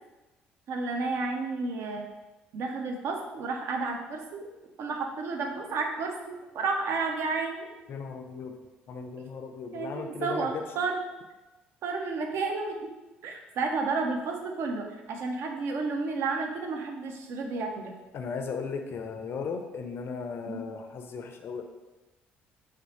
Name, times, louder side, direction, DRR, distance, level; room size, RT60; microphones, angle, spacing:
voice 1, 0.7-2.1 2.5-4.5 4.8-7.7 9.7-11.0 11.8-12.9 13.2-17.9 20.5-20.6, right 4 dB, 60° right, 3 dB, 0.4 m, -31 dB
voice 2, 7.9-8.6 8.9-10.6 18.1-21.6, left 5 dB, 50° left, 5 dB, 0.3 m, -36 dB
2.5 x 2.0 x 3.0 m, 1.1 s
hypercardioid pair, 55°, 5 cm